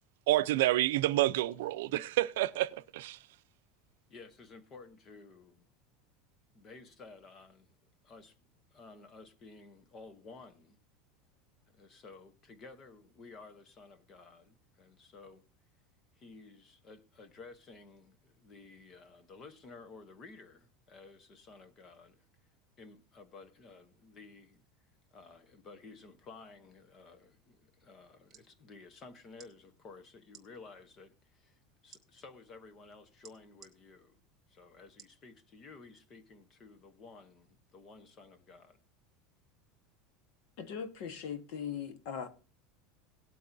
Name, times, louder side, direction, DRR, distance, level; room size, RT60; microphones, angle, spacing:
voice 1, 0.3-3.2, right 15 dB, 75° right, 0.5 m, -29 dB
voice 2, 4.1-5.7 6.5-7.7 8.0-8.3 8.7-10.8 11.7-15.4 16.2-22.2 22.8-24.6 25.1-31.1 31.4-31.5 31.8-34.2 34.5-38.8, left 4 dB, 25° left, 0.9 m, -54 dB
sound 1, 28.3-28.5 29.3-29.5 30.3-30.5 31.9-32.0 33.2-33.7 35.0-35.2 35.8-35.9, right 8 dB, 20° right, 1.2 m, -55 dB
voice 3, 40.6-42.3, left 7 dB, 50° left, 1.3 m, -39 dB
18.5 x 8.4 x 2.7 m
supercardioid pair, 175°, 0 cm